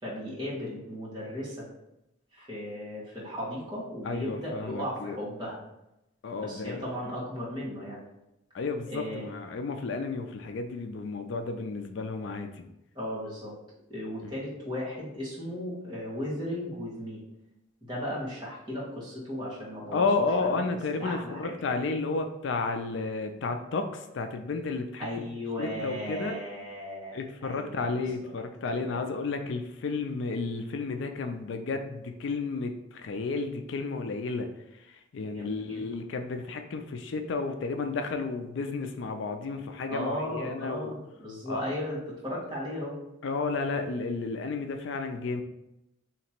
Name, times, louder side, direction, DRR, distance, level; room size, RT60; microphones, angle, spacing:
voice 1, 0.0-1.7 2.3-5.6 6.4-8.0 8.9-9.3 12.9-13.5 13.9-17.2 17.8-20.1 20.5-20.6 21.0-21.5 25.0-27.1 27.4-28.0 28.7-29.1 35.2-35.9 39.9-42.9, equal, 20° right, -8 dB, 1.5 m, -36 dB
voice 2, 4.0-5.2 6.2-6.9 8.5-12.6 14.2-14.3 19.9-25.3 25.6-26.4 27.1-34.5 34.8-40.9 41.5-41.6 43.2-45.4, left 3 dB, 65° left, 6 dB, 0.4 m, -32 dB
3.2 x 2.9 x 4.3 m, 0.88 s
head